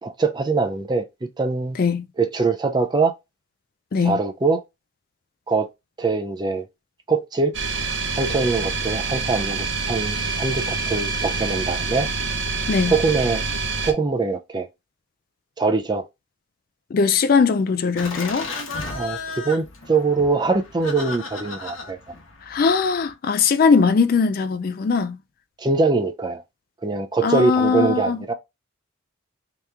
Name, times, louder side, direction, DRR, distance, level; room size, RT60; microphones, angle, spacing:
voice 1, 0.0-1.8 2.2-3.1 4.0-4.6 5.5-5.7 6.0-6.6 7.1-7.5 8.2-12.1 12.9-13.4 13.8-14.7 15.6-16.1 18.9-22.2 25.6-26.4 26.8-28.3, right 4 dB, 20° right, 0.4 m, -23 dB
sound 1, 7.5-13.9, right 4 dB, 60° right, 0.7 m, -26 dB
voice 2, 16.9-18.5 22.5-25.2 27.2-28.2, left 5 dB, 45° left, 0.3 m, -20 dB
Laughter, 18.0-23.1, left 3 dB, 80° left, 1.0 m, -35 dB
3.4 x 2.9 x 3.5 m
head